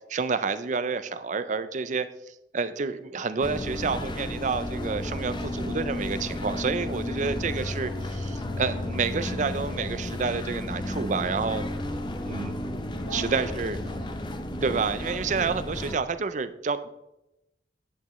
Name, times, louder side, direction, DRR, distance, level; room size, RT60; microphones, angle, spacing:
voice 1, 0.1-11.7 12.3-12.6 13.1-13.8 14.6-16.9, right 5 dB, 40° right, 12 dB, 0.4 m, -29 dB
sound 1, 3.4-16.0, left 1 dB, 25° left, 0.6 m, -33 dB
voice 2, 11.7-13.4 13.8-14.4, right 1 dB, 90° left, -1 dB, 2.7 m, -43 dB
10.0 x 8.3 x 3.1 m, 0.90 s
head